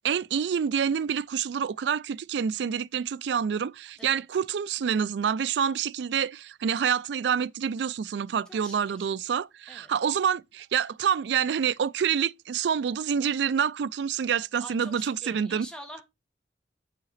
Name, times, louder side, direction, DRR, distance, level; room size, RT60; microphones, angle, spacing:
voice 1, 0.0-15.7, right 7 dB, 70° right, 0.3 m, -27 dB
voice 2, 8.5-9.1 9.7-9.9 14.6-16.0, equal, 5° left, 1.1 m, -45 dB
5.8 x 5.0 x 4.0 m
head